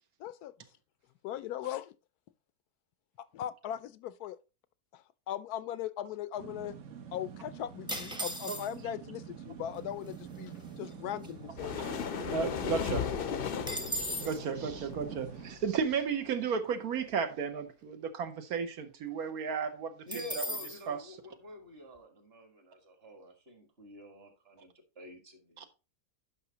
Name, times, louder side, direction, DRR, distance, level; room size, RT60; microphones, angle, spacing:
voice 1, 0.2-0.5 1.2-1.9 3.2-4.4 4.9-6.8 7.1-12.0, left 11 dB, 80° left, 1.1 m, -39 dB
sound 1, 6.4-15.6, right 7 dB, 60° right, 1.1 m, -46 dB
sound 2, 7.9-9.0 9.8-9.9 10.1-10.4 10.8-12.3 12.6-12.7 13.0-14.4 20.1-20.8, equal, 5° right, 0.6 m, -38 dB
sound 3, 11.6-15.9, left 7 dB, 55° left, 0.6 m, -36 dB
voice 2, 12.2-13.1 13.9-20.0 20.3-20.4 20.9-21.0 25.6-25.7, right 6 dB, 75° right, 1.4 m, -34 dB
voice 3, 20.1-25.7, equal, 40° right, 1.7 m, -49 dB
10.5 x 5.7 x 2.8 m
omnidirectional pair, 1.6 m